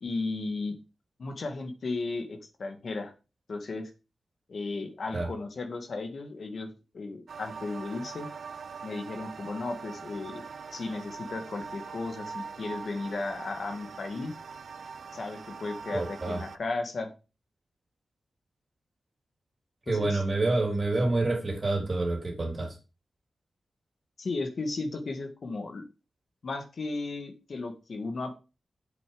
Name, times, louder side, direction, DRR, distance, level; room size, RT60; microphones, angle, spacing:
voice 1, 0.0-0.8 1.2-3.1 3.5-3.9 4.5-8.3 8.8-10.4 10.7-14.4 15.1-17.1 19.9-20.2 24.2-25.8 26.4-28.4, left 3 dB, 55° left, 6 dB, 1.8 m, -35 dB
sound 1, 7.3-16.6, right 5 dB, 70° right, 0.8 m, -42 dB
voice 2, 15.9-16.4 19.9-22.8, right 2 dB, 30° right, 3 dB, 3.0 m, -28 dB
8.0 x 7.0 x 5.1 m, 0.30 s
wide cardioid pair, 135°, 0 cm